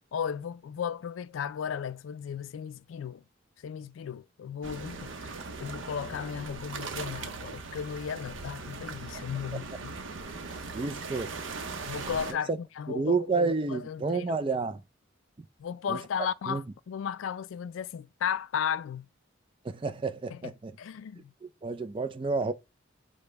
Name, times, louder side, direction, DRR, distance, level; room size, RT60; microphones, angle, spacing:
voice 1, 0.1-3.2 3.6-9.9 10.5-10.6 11.9-14.3 15.6-19.1 20.3-20.5 20.8-21.3, left 8 dB, 90° left, 0.3 m, -35 dB
sound 1, 4.6-12.3, right 4 dB, 85° right, 0.7 m, -39 dB
voice 2, 10.7-11.3 12.3-12.6 12.9-14.8 15.9-16.0 16.5-16.6 19.6-20.7 21.6-22.5, right 4 dB, 25° right, 0.3 m, -30 dB
5.1 x 2.1 x 4.5 m
head